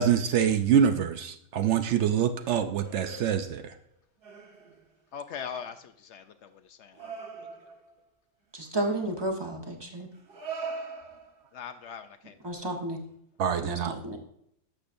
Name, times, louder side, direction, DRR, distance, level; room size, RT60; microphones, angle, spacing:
voice 1, 0.0-3.7 13.4-13.9, right 8 dB, 70° right, 9 dB, 0.8 m, -25 dB
sound 1, 1.9-3.9 4.2-4.9 5.4-5.7 6.9-7.9 9.1-9.3 10.1-11.6 13.0-13.1, right 4 dB, 45° right, 1.4 m, -43 dB
voice 2, 5.1-7.5 11.5-12.4, left 7 dB, 70° left, 9 dB, 0.8 m, -41 dB
voice 3, 8.5-10.1 12.4-13.0 13.6-14.2, right 1 dB, 20° right, 2 dB, 1.1 m, -32 dB
11.5 x 6.8 x 2.6 m, 0.73 s
omnidirectional pair, 1.3 m